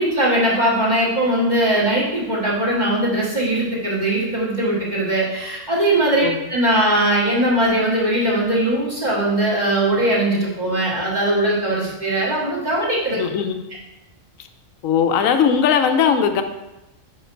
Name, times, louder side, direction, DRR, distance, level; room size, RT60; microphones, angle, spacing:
voice 1, 0.0-13.2, right 1 dB, 35° right, -5 dB, 1.9 m, -20 dB
voice 2, 13.1-13.7 14.8-16.4, left 7 dB, 85° left, 7 dB, 1.0 m, -18 dB
5.8 x 5.2 x 4.5 m, 0.96 s
omnidirectional pair, 1.4 m